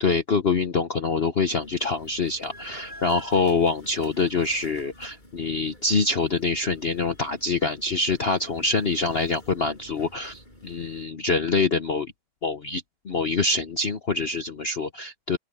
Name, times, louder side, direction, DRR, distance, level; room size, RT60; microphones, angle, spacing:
voice 1, 0.0-12.1 12.4-15.4, left 4 dB, 75° left, 0.5 m, -25 dB
sound 1, 1.6-11.1, left 1 dB, 20° left, 8.0 m, -49 dB
open air
omnidirectional pair, 2.4 m